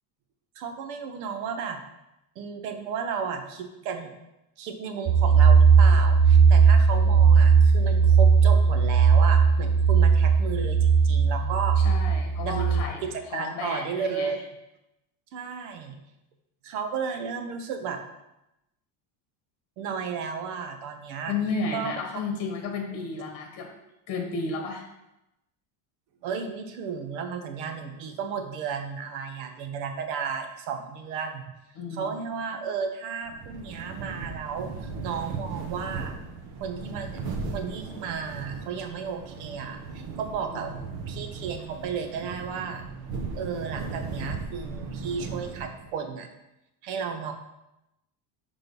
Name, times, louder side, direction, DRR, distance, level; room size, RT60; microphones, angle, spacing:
voice 1, 0.6-1.8 2.4-4.1 4.6-11.8 12.4-14.4 15.3-16.0 16.6-18.0 19.8-21.3 21.7-21.9 26.2-31.4 31.9-36.2 36.6-37.2 37.5-40.7 41.1-42.8 43.3-46.3 46.8-47.3, right 6 dB, 80° right, 5 dB, 1.1 m, -33 dB
sound 1, 5.1-12.8, right 6 dB, 20° right, 0.4 m, -18 dB
voice 2, 11.8-13.0 13.3-14.3 21.3-23.7 24.1-24.9 31.7-32.1 40.5-40.6, left 4 dB, 45° left, 2 dB, 1.4 m, -32 dB
sound 2, 33.2-46.0, right 4 dB, 55° right, 1.1 m, -37 dB
6.0 x 3.7 x 5.3 m, 0.91 s
cardioid pair, 155°, 45 cm